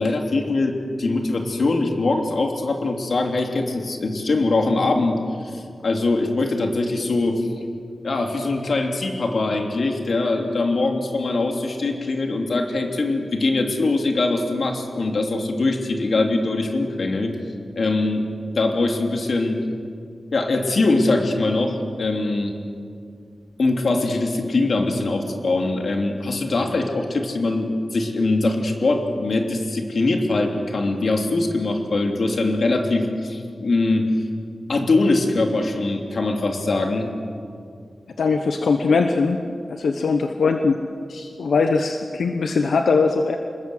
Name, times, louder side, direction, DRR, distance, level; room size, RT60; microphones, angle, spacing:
voice 1, 0.0-7.5 8.0-17.3 17.8-18.2 18.5-19.6 20.3-22.5 23.6-34.1 34.7-37.1, left 2 dB, 55° left, 3 dB, 3.0 m, -22 dB
voice 2, 38.2-39.4 39.7-40.8 41.1-43.4, left 4 dB, 90° left, 5 dB, 1.1 m, -21 dB
27.0 x 21.0 x 7.9 m, 2.3 s
wide cardioid pair, 150°, 0 cm